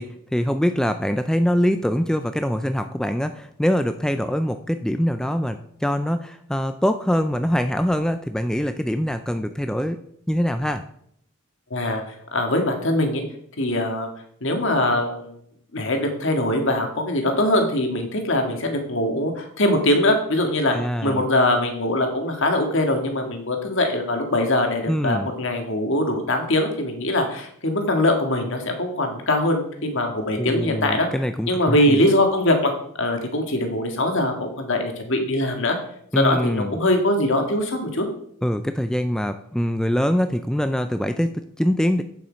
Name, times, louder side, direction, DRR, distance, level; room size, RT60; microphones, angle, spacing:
voice 1, 0.0-10.0 10.3-10.8 20.7-21.3 24.9-25.3 30.4-32.0 36.1-36.8 38.4-42.0, equal, 5° left, 8 dB, 0.4 m, -23 dB
voice 2, 11.7-12.0 12.3-13.2 13.6-14.1 14.4-15.3 15.7-20.8 21.0-31.1 31.5-32.7 33.0-35.8 36.2-38.1, left 1 dB, 60° left, 4 dB, 1.8 m, -22 dB
8.6 x 7.1 x 5.1 m, 0.67 s
head